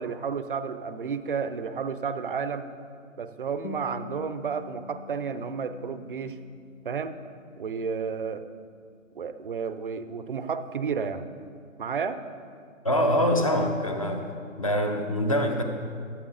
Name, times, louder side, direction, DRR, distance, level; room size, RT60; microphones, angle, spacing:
voice 1, 0.0-2.7 3.2-6.4 6.8-7.2 7.6-8.4 9.1-11.3 11.8-12.2, right 6 dB, 45° right, 11 dB, 0.4 m, -31 dB
sound 1, 3.6-8.6, left 4 dB, 90° left, 1.2 m, -45 dB
voice 2, 12.8-14.3 14.6-15.6, equal, 25° left, 4 dB, 0.5 m, -24 dB
12.5 x 7.2 x 3.7 m, 2.3 s
hypercardioid pair, 155°, 40 cm